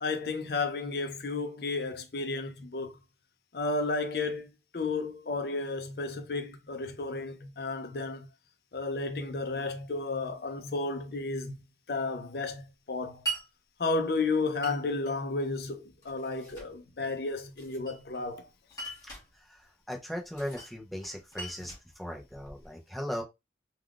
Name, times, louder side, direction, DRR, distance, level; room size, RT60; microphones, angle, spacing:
voice 1, 0.0-3.0 3.5-8.3 8.7-11.5 11.9-13.2 13.8-18.5, left 3 dB, 60° left, 0.5 m, -32 dB
Glass, 13.3-13.5 14.6-15.2 16.0-16.7 17.6-18.3 18.7-19.3 20.3-20.8 21.0-22.7, right 4 dB, 20° left, 1.3 m, -40 dB
voice 2, 19.5-23.2, equal, ahead, 0.5 m, -38 dB
3.4 x 2.3 x 2.3 m
head